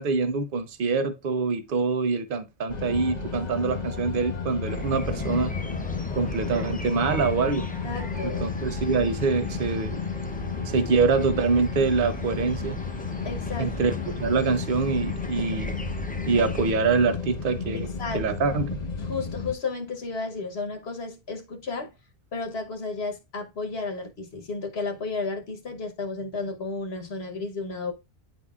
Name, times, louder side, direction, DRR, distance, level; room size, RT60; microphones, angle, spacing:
voice 1, 0.0-5.5 6.1-7.7 8.2-10.0 10.7-12.8 13.6-15.7 16.1-17.9 18.1-18.8, right 4 dB, 60° right, 0.9 m, -25 dB
sound 1, 2.7-19.5, left 5 dB, 45° left, 1.1 m, -33 dB
sound 2, 4.6-16.7, left 2 dB, 15° left, 0.3 m, -37 dB
voice 2, 7.8-8.4 13.2-13.7 17.7-18.2 19.0-21.9 22.3-27.9, left 4 dB, 75° left, 1.3 m, -33 dB
9.7 x 4.0 x 2.4 m
omnidirectional pair, 1.1 m